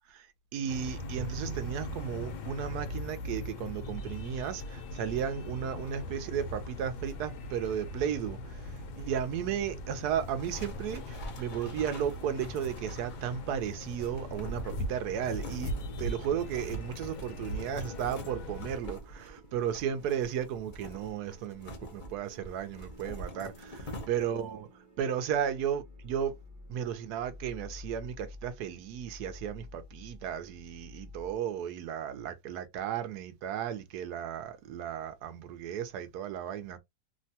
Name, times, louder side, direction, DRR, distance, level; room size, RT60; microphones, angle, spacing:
voice 1, 0.5-15.7 16.0-24.7 25.0-26.4 26.7-36.8, right 9 dB, 75° right, 1.1 m, -34 dB
sound 1, 0.7-18.8, equal, 75° left, 1.2 m, -40 dB
sound 2, 10.2-24.5, equal, 40° left, 0.7 m, -46 dB
sound 3, 14.8-31.4, left 2 dB, 15° right, 0.7 m, -53 dB
3.2 x 2.2 x 2.7 m
omnidirectional pair, 1.8 m